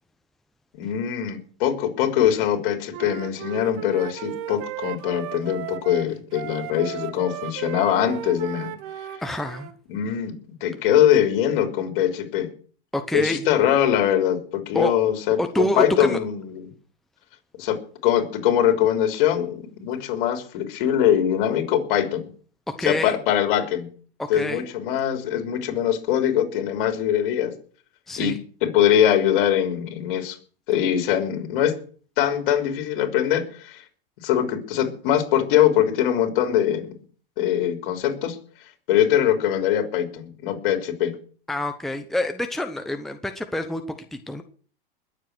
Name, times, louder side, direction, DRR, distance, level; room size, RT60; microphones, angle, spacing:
voice 1, 0.7-8.7 9.9-10.3 10.6-12.5 13.1-16.7 17.6-22.3 22.9-23.9 24.3-27.5 28.2-28.4 28.6-30.4 30.7-31.8 32.2-33.8 34.2-36.9 37.4-38.4 38.9-41.1, left 10 dB, 60° left, 7 dB, 3.6 m, -22 dB
Wind instrument woodwind instrument, 2.9-9.7, right 13 dB, 50° right, 1.4 m, -35 dB
voice 2, 9.2-9.7 12.9-13.4 14.7-14.9 15.4-16.2 22.8-23.2 24.2-24.7 28.1-28.4 41.5-44.4, left 1 dB, ahead, 6 dB, 0.9 m, -27 dB
21.0 x 7.6 x 6.2 m, 0.43 s
supercardioid pair, 130°, 29 cm